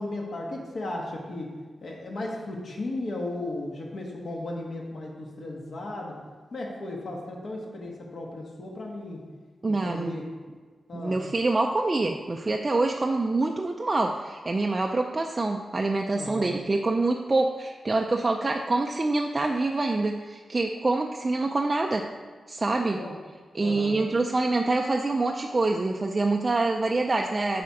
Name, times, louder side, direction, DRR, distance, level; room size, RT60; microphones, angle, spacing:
voice 1, 0.0-1.5 1.8-6.1 6.5-9.2 9.8-10.2 10.9-11.2 16.1-16.6 22.9-23.1 23.6-24.0, left 2 dB, 60° left, -1 dB, 1.4 m, -35 dB
voice 2, 9.6-10.1 10.9-22.1 22.5-23.0 23.5-27.6, right 2 dB, 25° right, 2 dB, 0.4 m, -26 dB
8.5 x 4.3 x 4.8 m, 1.5 s
wide cardioid pair, 150°, 0 cm